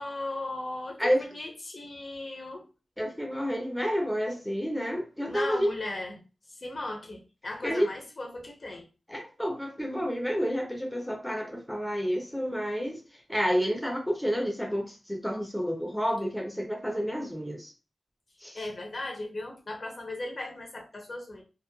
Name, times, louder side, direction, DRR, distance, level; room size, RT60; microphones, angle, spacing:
voice 1, 0.0-2.7 5.3-6.2 6.5-8.9 18.5-21.4, left 2 dB, 45° left, 2 dB, 0.6 m, -37 dB
voice 2, 3.0-5.7 7.6-7.9 9.1-13.0 13.3-17.7 18.4-18.6, equal, 5° left, 0 dB, 0.5 m, -29 dB
2.9 x 2.1 x 2.2 m, 0.31 s
wide cardioid pair, 140°, 0 cm